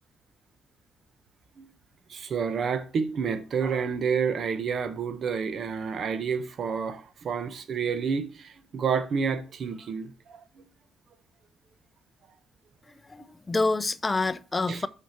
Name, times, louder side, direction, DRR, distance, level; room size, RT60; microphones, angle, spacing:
voice 1, 2.1-10.6 14.7-14.8, right 6 dB, 55° right, 1.1 m, -29 dB
voice 2, 13.1-14.9, left 3 dB, 20° left, 0.6 m, -27 dB
6.3 x 5.8 x 4.2 m
cardioid pair, 90°, 0 cm